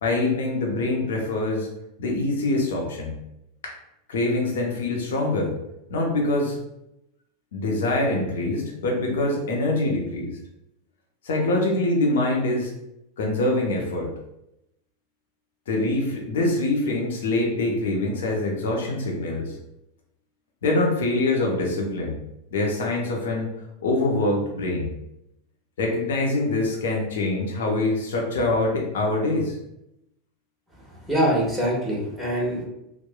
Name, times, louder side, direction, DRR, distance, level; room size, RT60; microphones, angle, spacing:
voice 1, 0.0-1.7 2.0-3.2 3.6-3.7 4.1-5.5 5.9-6.6 7.5-10.4 11.2-12.7 13.2-14.1 15.7-19.6 20.6-22.2 22.5-23.5 23.8-24.9 25.8-29.6, left 2 dB, 70° left, 0 dB, 0.6 m, -24 dB
voice 2, 31.1-32.6, equal, ahead, -5 dB, 1.1 m, -23 dB
3.0 x 2.1 x 2.2 m, 0.84 s
hypercardioid pair, 90°, 0 cm